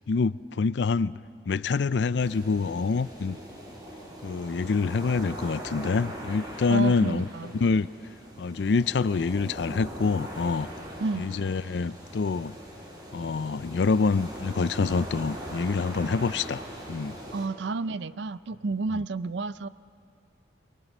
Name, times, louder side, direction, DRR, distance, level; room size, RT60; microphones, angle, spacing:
voice 1, 0.1-1.2 1.5-3.4 4.2-7.9 8.4-10.7 11.2-12.5 13.1-16.6 16.9-17.2, left 4 dB, 75° left, 17 dB, 0.4 m, -26 dB
sound 1, 2.2-17.5, equal, 25° right, 3.9 m, -41 dB
voice 2, 6.7-7.5 11.0-11.2 17.3-19.7, right 3 dB, 80° right, 16 dB, 0.5 m, -31 dB
28.0 x 23.0 x 6.1 m, 2.5 s
head